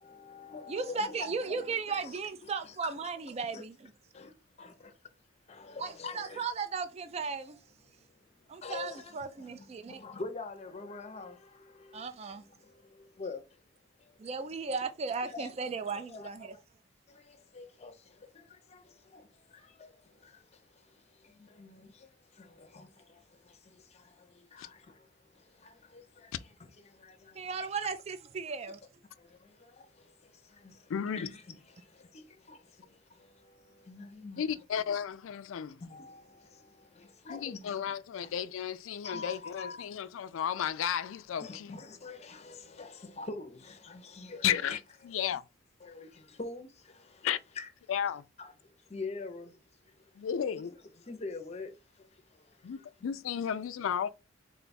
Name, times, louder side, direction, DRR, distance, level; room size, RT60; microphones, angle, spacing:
voice 1, 0.0-3.1 3.5-3.6 4.1-4.3 4.6-4.9 5.5-6.4 7.8-13.6 14.0-14.3 15.2-16.6 17.1-27.7 29.2-34.6 35.8-37.8 38.2-38.3 39.0-39.9 41.4-45.4 45.8-47.3 47.5-47.7 48.4-50.3 50.6-53.1, left 3 dB, 30° left, 0.6 m, -46 dB
voice 2, 0.7-3.8 5.8-7.6 8.5-10.0 11.9-12.4 14.2-16.5 27.3-28.8, right 5 dB, 30° right, 0.3 m, -36 dB
voice 3, 30.9-31.3 34.4-35.8 37.3-41.7 44.4-44.8 45.0-45.4 47.2-47.4 47.9-48.2 50.2-50.7 52.6-54.1, left 8 dB, 75° left, 0.3 m, -33 dB
3.7 x 2.3 x 4.0 m
head